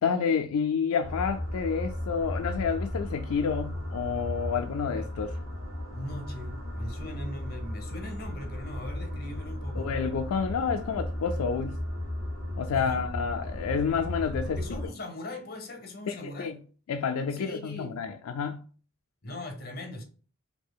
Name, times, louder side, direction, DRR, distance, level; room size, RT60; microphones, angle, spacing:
voice 1, 0.0-5.5 9.7-11.8 12.6-14.8 16.1-16.6 16.9-18.6, left 6 dB, 80° left, 0.4 m, -29 dB
sound 1, 1.0-14.9, left 1 dB, 85° right, 1.4 m, -35 dB
voice 2, 5.9-9.9 12.7-13.0 14.6-16.5 17.3-18.0 19.2-20.0, left 1 dB, 45° left, 0.9 m, -40 dB
4.4 x 2.8 x 2.3 m
head